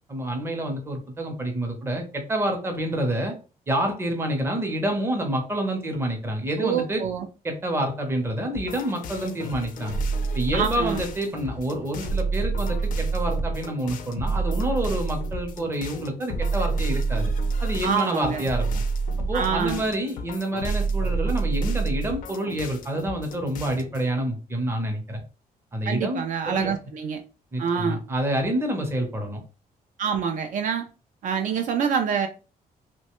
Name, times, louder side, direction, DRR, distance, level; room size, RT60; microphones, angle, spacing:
voice 1, 0.1-3.4 3.7-7.0 7.4-10.0 10.3-17.3 17.6-18.8 19.3-25.2 25.7-26.7 27.5-29.4, right 1 dB, 15° right, 3 dB, 0.6 m, -28 dB
voice 2, 6.6-7.3 10.5-11.0 17.8-18.4 19.3-19.8 25.9-27.2 27.6-28.0 30.0-30.8 31.2-32.3, right 7 dB, 55° right, 5 dB, 0.4 m, -26 dB
sound 1, 8.5-24.1, left 5 dB, 65° left, 0.4 m, -39 dB
sound 2, 9.9-11.2 12.0-13.7 14.2-15.6 16.3-17.9 18.4-19.8 20.6-22.2, right 4 dB, 75° right, 0.9 m, -26 dB
3.0 x 2.2 x 2.9 m, 0.33 s
cardioid pair, 175°, 15 cm